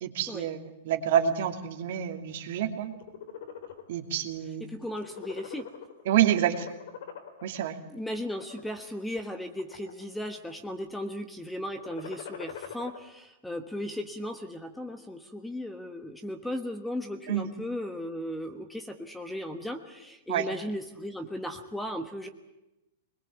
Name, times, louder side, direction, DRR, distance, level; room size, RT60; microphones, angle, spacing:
voice 1, 0.0-2.9 3.9-4.6 6.1-6.7 7.4-7.8 17.3-17.5 20.3-20.5, right 10 dB, 60° right, 6 dB, 2.5 m, -27 dB
sound 1, 2.8-3.8 4.3-4.5 4.8-6.1 6.5-7.6 8.2-8.7 9.3-10.0 10.3-10.8 11.7-13.0, left 9 dB, 65° left, 3.9 m, -43 dB
voice 2, 4.6-5.7 7.9-22.3, left 1 dB, 5° left, 7 dB, 1.3 m, -36 dB
22.5 x 21.5 x 8.3 m, 0.92 s
supercardioid pair, 160°, 0 cm